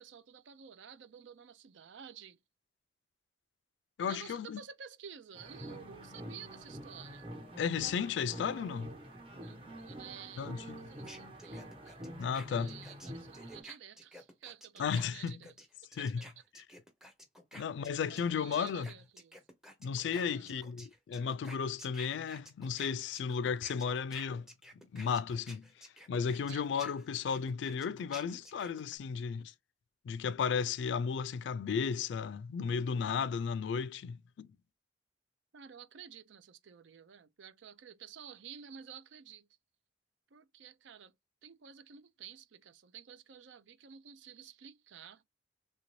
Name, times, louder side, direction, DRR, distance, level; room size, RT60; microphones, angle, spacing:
voice 1, 0.0-2.4 4.1-7.2 9.3-12.0 12.5-15.5 16.0-16.1 16.4-16.5 17.6-17.7 18.1-19.4 20.3-20.6 26.5-26.7 35.5-39.5 40.3-41.1 41.4-45.2, right 8 dB, 85° right, 0.5 m, -52 dB
voice 2, 4.0-4.6 7.6-8.9 10.4-10.8 12.2-12.7 14.8-15.4 16.0-16.2 17.5-18.9 19.8-24.5 24.9-25.6 26.1-29.5 30.1-34.5, left 6 dB, 75° left, 0.3 m, -34 dB
sound 1, 5.3-13.6, equal, 30° right, 1.0 m, -47 dB
sound 2, 11.1-18.3 18.5-29.0, equal, 5° right, 0.6 m, -52 dB
3.3 x 2.6 x 3.0 m
head